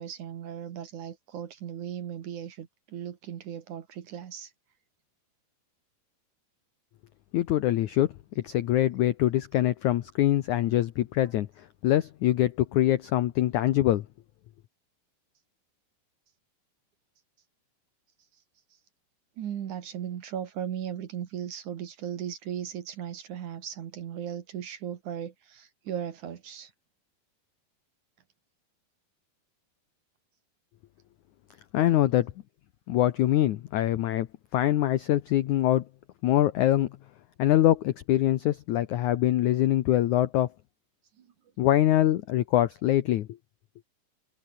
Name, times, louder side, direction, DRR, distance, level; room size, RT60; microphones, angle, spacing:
voice 1, 0.0-4.5 19.4-26.7 41.2-41.3, right 9 dB, 55° right, 2.6 m, -37 dB
voice 2, 7.3-11.5 11.8-14.0 31.7-32.3 32.9-34.3 34.5-35.8 36.2-37.0 37.4-40.5 41.6-43.3, left 13 dB, 90° left, 1.7 m, -24 dB
omnidirectional pair, 4.8 m